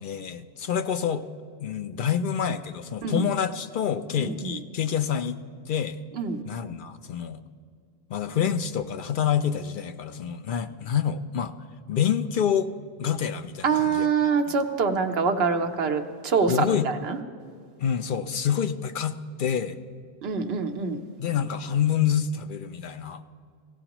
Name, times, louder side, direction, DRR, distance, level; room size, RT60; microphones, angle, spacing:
voice 1, 0.0-1.2 1.6-5.4 5.7-6.0 6.5-7.4 8.1-11.5 11.9-12.7 13.0-14.5 16.5-16.9 17.8-19.8 21.2-23.2, left 8 dB, 60° left, 10 dB, 0.6 m, -27 dB
voice 2, 4.2-4.6 6.1-6.4 13.6-17.2 20.2-21.0, right 5 dB, 70° right, 5 dB, 1.1 m, -25 dB
17.0 x 16.5 x 3.0 m, 2.2 s
omnidirectional pair, 1.1 m